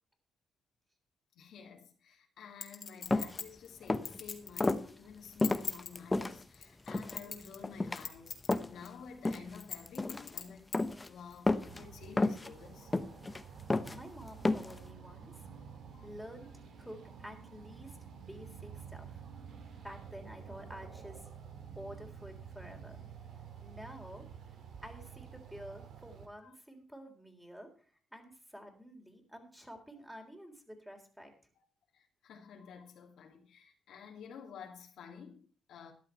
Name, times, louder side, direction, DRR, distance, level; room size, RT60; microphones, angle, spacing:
voice 1, 1.3-10.7 11.1-12.9 13.9-14.0 15.9-16.1 26.4-26.5 30.0-30.1 31.9-35.9, left 6 dB, 75° left, 2.5 m, -51 dB
Chink clink, 2.6-4.8 5.3-5.9 6.5-7.7 8.0-8.5 8.9-9.0 9.6-10.8 11.3-11.4, left 6 dB, 50° left, 2.2 m, -41 dB
sound 1, 3.1-3.4 3.8-4.2 4.6-4.8 5.4-6.3 6.9-7.2 7.6-8.0 8.5-8.9 9.3-9.6 9.9-10.3 10.7-11.1 11.5-11.8 12.2-12.5 12.9-13.4 13.7-14.0 14.5-14.8, left 2 dB, 20° left, 0.8 m, -31 dB
sound 2, 11.6-26.3, right 7 dB, 70° right, 2.7 m, -50 dB
voice 2, 13.9-15.5 16.0-18.0 18.3-19.2 19.8-21.3 21.8-23.0 23.6-24.3 24.8-27.7 28.1-31.3, equal, 5° right, 3.6 m, -50 dB
13.0 x 11.0 x 4.6 m
cardioid pair, 90°, 0 cm